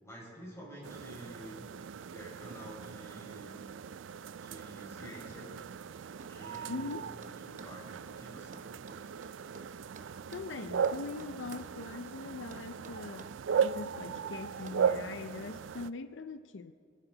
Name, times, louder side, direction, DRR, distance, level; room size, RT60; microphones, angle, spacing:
voice 1, 0.0-1.6 2.1-3.6 4.3-5.5 6.2-6.9 7.4-8.6, right 1 dB, 15° left, -4 dB, 5.0 m, -49 dB
sound 1, 0.8-15.9, right 7 dB, 85° right, 0.4 m, -37 dB
sound 2, 6.2-7.8 8.5-10.5 10.8-11.8 12.5-13.8 14.7-14.9, right 3 dB, 40° right, 0.7 m, -53 dB
voice 2, 6.7-7.1 10.3-13.3 13.6-16.7, left 3 dB, 75° left, 11 dB, 0.5 m, -42 dB
28.5 x 11.5 x 4.0 m, 2.2 s
head